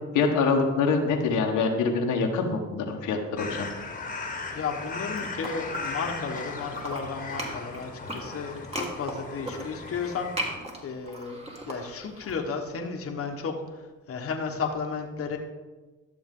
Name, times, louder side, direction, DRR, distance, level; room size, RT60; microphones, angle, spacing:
voice 1, 0.1-3.7, left 4 dB, 85° left, 1 dB, 1.4 m, -25 dB
sound 1, 3.4-10.6, left 3 dB, 25° left, 1.5 m, -37 dB
voice 2, 4.5-15.4, left 5 dB, 50° left, 2 dB, 1.3 m, -33 dB
sound 2, 4.8-6.4 6.7-12.3, equal, 20° right, 2.1 m, -37 dB
12.5 x 7.0 x 3.8 m, 1.2 s
cardioid pair, 90°, 30 cm